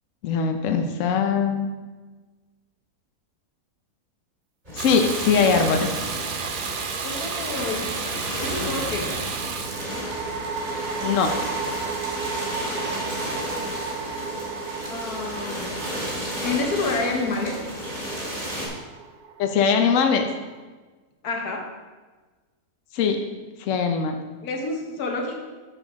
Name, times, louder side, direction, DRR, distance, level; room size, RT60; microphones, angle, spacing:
voice 1, 0.2-1.7 4.7-5.9 11.0-11.3 19.4-20.3 22.9-23.2 23.6-24.1, left 6 dB, 65° left, 5 dB, 1.0 m, -21 dB
sound 1, 4.6-18.7, equal, 30° right, 2.5 m, -33 dB
Water tap faucet / Bathtub (filling or washing), 4.8-9.9, right 5 dB, 60° right, 0.5 m, -31 dB
sound 2, 6.1-6.8 9.3-20.6, right 5 dB, 85° right, 1.2 m, -34 dB
voice 2, 7.0-7.9 8.4-9.1 14.1-14.3 14.9-15.8 16.4-17.7 21.2-21.7 24.4-25.4, left 3 dB, 85° left, 2 dB, 1.7 m, -29 dB
8.4 x 6.9 x 3.6 m, 1.3 s
omnidirectional pair, 1.6 m